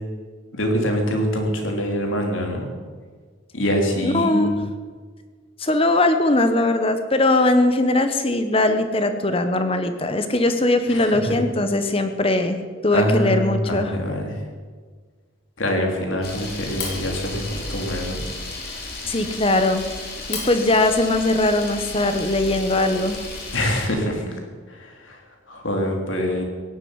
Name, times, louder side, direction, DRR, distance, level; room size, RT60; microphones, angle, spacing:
voice 1, 0.5-2.7 3.5-4.6 10.9-11.2 12.9-14.4 15.6-18.2 23.5-24.4 24.7-25.2 25.5-26.4, equal, 75° left, 2 dB, 3.3 m, -24 dB
voice 2, 4.0-4.5 5.6-12.6 12.8-13.9 19.0-19.8 20.3-23.2, left 2 dB, 30° left, 8 dB, 1.1 m, -20 dB
Camera, 16.2-23.9, left 3 dB, 50° left, 3.6 m, -33 dB
17.0 x 8.2 x 9.7 m, 1.5 s
head